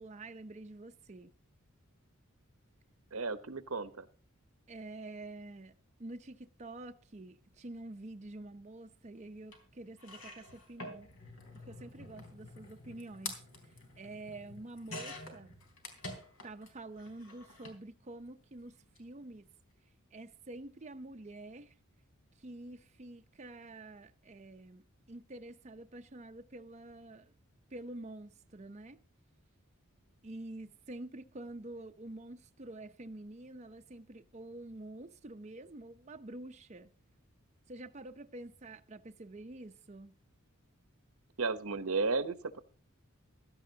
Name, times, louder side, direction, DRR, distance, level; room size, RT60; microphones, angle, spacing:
voice 1, 0.0-1.3 4.7-11.1 11.5-13.4 13.6-15.5 16.4-19.5 20.1-21.8 22.4-27.3 27.7-29.0 30.2-36.9 37.7-40.1, right 2 dB, 30° right, 0.6 m, -48 dB
voice 2, 3.1-4.1 41.4-42.6, right 4 dB, 85° right, 1.0 m, -34 dB
sound 1, 9.5-9.6 10.0-16.7 17.0-17.8 18.8-19.0 19.2-19.3, left 2 dB, 75° left, 3.7 m, -47 dB
16.0 x 12.5 x 2.8 m
head